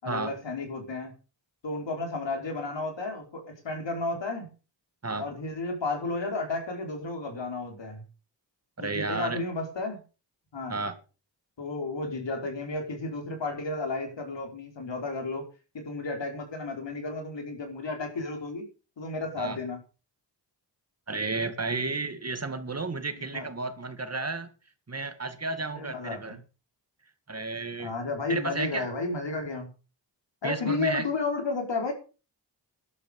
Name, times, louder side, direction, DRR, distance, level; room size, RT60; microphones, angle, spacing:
voice 1, 0.0-1.1 1.6-4.5 5.2-8.0 8.8-10.0 10.5-10.8 11.6-15.5 15.7-18.7 19.0-19.8 23.3-23.5 25.7-26.4 27.8-29.7 30.4-31.9, left 3 dB, 80° left, 5.0 m, -32 dB
voice 2, 8.8-9.4 10.7-11.0 19.4-19.6 21.1-24.5 24.9-26.4 27.3-27.9 28.3-28.9 30.4-31.0, right 3 dB, 35° right, 2.1 m, -32 dB
13.5 x 11.5 x 5.4 m
wide cardioid pair, 90°, 43 cm